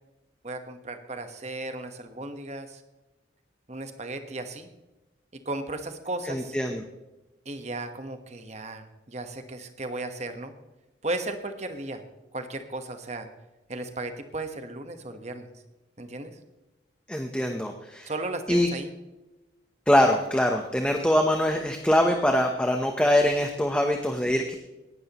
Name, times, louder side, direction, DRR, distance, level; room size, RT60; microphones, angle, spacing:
voice 1, 0.4-2.8 3.7-4.7 5.4-6.6 7.4-10.5 11.0-12.0 12.3-13.3 13.7-15.5 16.0-16.4 18.0-18.9, right 2 dB, 35° right, 7 dB, 1.3 m, -35 dB
voice 2, 6.3-6.8 17.1-18.1 18.5-18.7 19.9-24.6, left 1 dB, 5° left, 4 dB, 0.8 m, -23 dB
18.0 x 12.5 x 3.0 m, 1.0 s
head